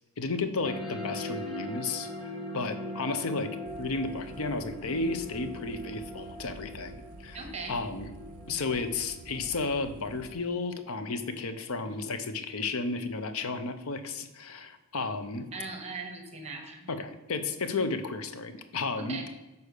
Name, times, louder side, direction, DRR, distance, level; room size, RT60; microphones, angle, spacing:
voice 1, 0.2-8.1 8.5-15.5 16.9-19.3, left 3 dB, 65° left, 9 dB, 0.6 m, -33 dB
sound 1, 0.6-11.6, left 1 dB, 25° left, 1.1 m, -41 dB
sound 2, 3.7-10.3, right 3 dB, 65° right, 0.5 m, -50 dB
voice 2, 7.3-7.7 15.5-16.9 19.0-19.3, right 3 dB, 30° right, 3 dB, 0.9 m, -39 dB
6.6 x 4.1 x 6.4 m, 1.1 s
head